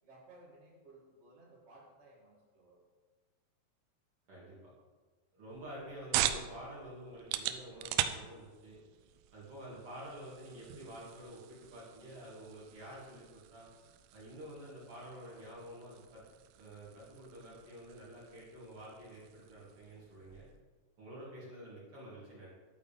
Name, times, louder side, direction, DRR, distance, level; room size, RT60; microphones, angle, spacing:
voice 1, 0.0-2.8, right 2 dB, 20° right, -7 dB, 1.9 m, -59 dB
voice 2, 4.3-4.7 5.3-8.8 9.3-13.7 14.1-16.2 16.6-20.5 21.0-22.5, right 1 dB, 40° right, -7 dB, 2.7 m, -49 dB
sound 1, 5.5-20.6, right 12 dB, 85° right, 2.2 m, -42 dB
10.5 x 8.4 x 3.5 m, 1.4 s
omnidirectional pair, 4.9 m